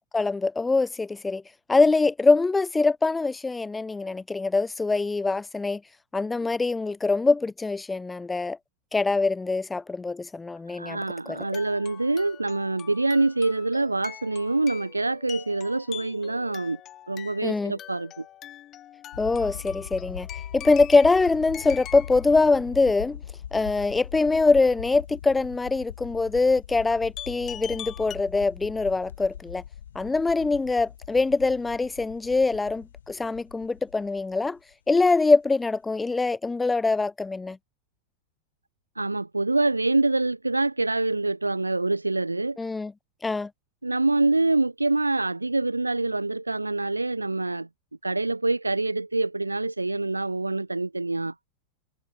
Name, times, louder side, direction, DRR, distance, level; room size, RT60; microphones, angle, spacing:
voice 1, 0.1-1.4 1.7-5.8 6.1-8.6 8.9-11.0 11.3-11.4 17.4-17.7 19.2-20.3 20.5-23.2 23.5-29.6 30.0-34.6 34.9-37.6 42.6-42.9 43.2-43.5, left 3 dB, 10° left, 0.3 m, -23 dB
voice 2, 10.7-16.8 17.1-18.2 39.0-42.6 43.8-47.7 48.0-51.3, right 2 dB, 80° right, 0.4 m, -25 dB
Music Box Playing Pachelbel Canon in D, 11.3-22.3 27.2-28.2, left 12 dB, 30° left, 2.7 m, -43 dB
sound 1, 19.1-34.7, left 9 dB, 65° left, 2.3 m, -41 dB
figure-of-eight pair, 90°, 0 cm